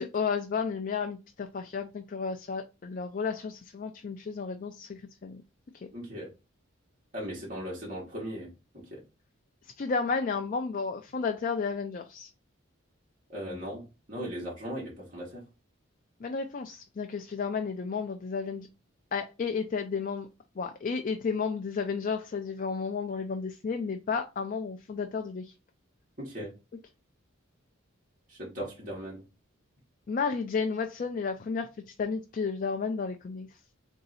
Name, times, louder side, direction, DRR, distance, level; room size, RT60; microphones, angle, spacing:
voice 1, 0.0-5.4 9.6-12.3 16.2-18.7 19.1-20.3 20.6-25.5 30.1-33.5, left 5 dB, 40° left, 6 dB, 0.3 m, -32 dB
voice 2, 5.9-6.3 7.1-8.5 8.7-9.0 13.3-15.4 26.2-26.5 28.3-29.2, equal, 40° right, -5 dB, 1.5 m, -38 dB
3.8 x 2.7 x 4.1 m, 0.28 s
head